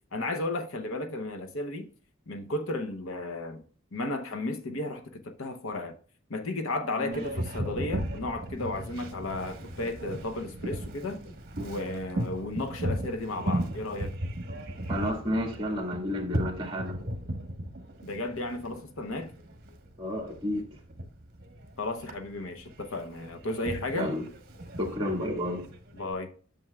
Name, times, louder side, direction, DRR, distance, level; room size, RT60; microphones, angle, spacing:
voice 1, 0.1-1.9 2.3-3.6 3.9-5.9 6.3-11.2 11.6-14.2 18.0-19.3 21.8-24.1 25.9-26.3, left 2 dB, 75° left, 0.8 m, -34 dB
Boat Water vehicle, 7.1-26.1, right 1 dB, 45° right, 1.3 m, -37 dB
voice 2, 14.9-17.0 20.0-20.6 23.9-24.2 24.8-25.6, left 1 dB, 25° right, 2.0 m, -31 dB
10.5 x 7.0 x 2.3 m
head